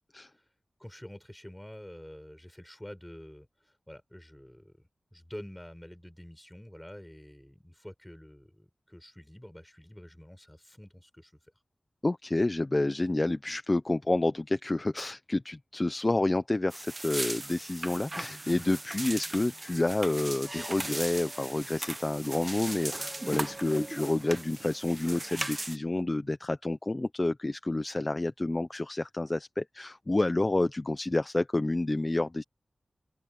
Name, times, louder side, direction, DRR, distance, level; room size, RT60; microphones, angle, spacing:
voice 1, 0.8-11.3, equal, 10° left, 6.6 m, -48 dB
voice 2, 12.0-32.4, left 2 dB, 30° left, 0.9 m, -29 dB
sound 1, 16.7-25.8, right 2 dB, 25° right, 1.0 m, -38 dB
open air
wide cardioid pair, 100°, 0 cm